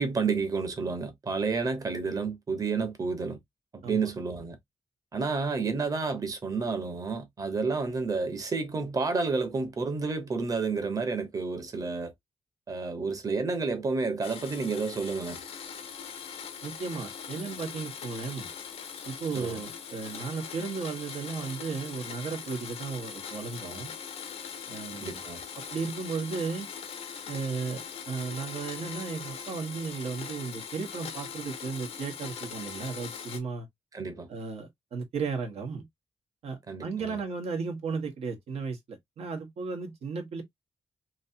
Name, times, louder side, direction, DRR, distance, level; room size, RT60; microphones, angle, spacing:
voice 1, 0.0-3.4 3.7-4.6 5.1-12.1 12.7-15.4 19.3-19.6 25.0-25.4 33.9-34.3 36.7-37.2, right 4 dB, 35° right, 0.9 m, -30 dB
Domestic sounds home sounds, 14.2-33.4, left 7 dB, 90° left, 0.8 m, -41 dB
voice 2, 16.6-18.5 19.0-23.9 24.7-25.2 25.7-26.7 27.3-33.7 34.3-35.8 36.4-40.4, right 5 dB, 85° right, 1.2 m, -35 dB
3.1 x 2.8 x 2.6 m
wide cardioid pair, 125°, 10 cm